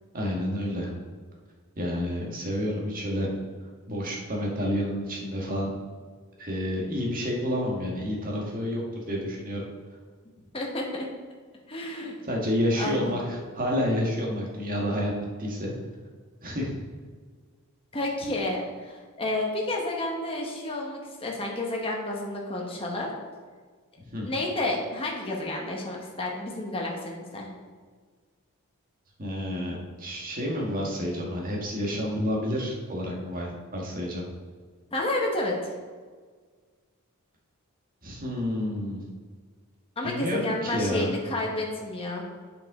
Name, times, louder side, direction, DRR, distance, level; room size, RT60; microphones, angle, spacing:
voice 1, 0.1-0.9 1.8-3.3 3.9-5.7 6.4-9.6 12.2-15.1 15.4-15.7 16.4-16.7 24.0-24.3 29.2-34.2 38.0-39.0 40.0-41.1, equal, 40° right, -2 dB, 1.5 m, -29 dB
voice 2, 10.5-11.1 11.7-12.2 12.8-13.3 17.9-23.1 24.2-27.5 34.9-35.7 40.0-42.2, left 2 dB, 25° left, -1 dB, 1.2 m, -30 dB
8.3 x 5.3 x 3.7 m, 1.5 s
head